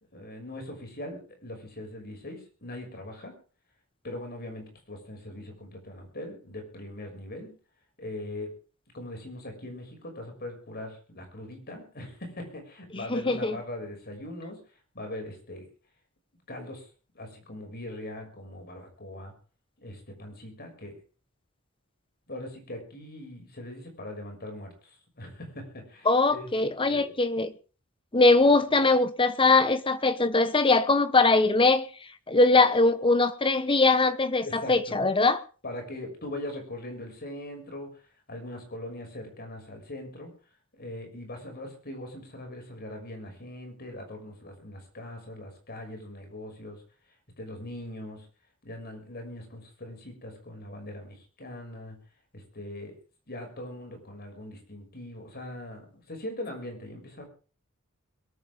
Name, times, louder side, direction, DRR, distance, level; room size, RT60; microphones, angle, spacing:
voice 1, 0.1-3.4 4.0-7.5 8.0-8.6 8.9-14.6 14.9-15.7 16.5-16.9 17.1-19.3 19.8-21.0 22.3-26.5 26.8-27.1 34.4-34.8 35.6-38.0 38.3-40.3 40.7-46.8 47.4-48.3 48.6-52.0 52.3-53.0 53.3-57.2, left 1 dB, 45° left, 6.4 m, -41 dB
voice 2, 13.1-13.6 26.1-27.5 28.1-31.8 32.3-35.4, left 3 dB, 25° left, 1.2 m, -21 dB
22.5 x 13.5 x 3.7 m
head